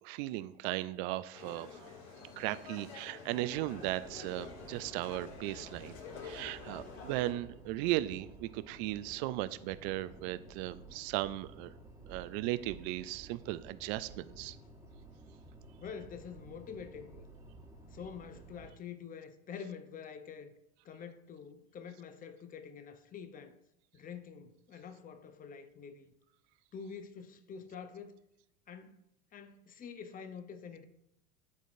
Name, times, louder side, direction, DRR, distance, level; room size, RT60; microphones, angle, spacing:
voice 1, 0.0-1.7 2.4-6.0 6.2-11.7 12.1-14.6, right 16 dB, 50° right, 0.4 m, -37 dB
sound 1, 1.3-7.3, left 5 dB, 65° left, 2.3 m, -49 dB
sound 2, 3.5-18.7, right 2 dB, 10° right, 1.4 m, -54 dB
voice 2, 15.8-17.3 17.9-20.5 20.8-23.5 23.9-26.1 26.7-28.1 28.7-29.0 29.3-30.8, left 6 dB, 20° left, 0.7 m, -47 dB
11.5 x 3.9 x 2.6 m
hypercardioid pair, 90°, 42 cm